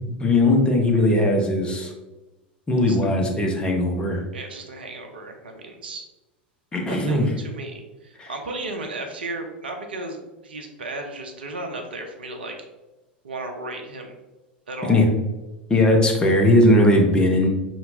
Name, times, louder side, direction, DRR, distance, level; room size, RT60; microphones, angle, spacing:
voice 1, 0.2-1.9 2.7-4.2 6.7-7.3 8.2-8.3 14.9-15.1 15.7-17.5, left 1 dB, 15° left, 0 dB, 0.9 m, -19 dB
voice 2, 4.3-6.1 6.8-12.6 13.2-14.2 14.7-15.0, right 2 dB, 75° right, 4 dB, 0.6 m, -34 dB
5.6 x 2.9 x 2.7 m, 1.1 s
figure-of-eight pair, 85°, 6 cm